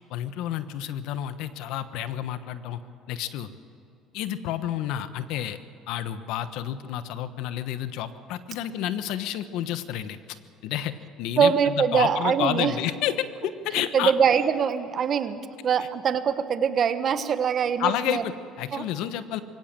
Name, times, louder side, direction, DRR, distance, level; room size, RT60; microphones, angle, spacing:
voice 1, 0.1-2.8 3.1-3.5 4.1-5.6 5.9-14.1 15.8-15.9 17.8-19.4, left 11 dB, 75° left, 12 dB, 1.2 m, -30 dB
voice 2, 11.4-12.7 13.9-18.2 18.7-18.8, right 7 dB, 45° right, 11 dB, 1.3 m, -23 dB
23.0 x 17.0 x 7.6 m, 2.6 s
supercardioid pair, 100°, 0 cm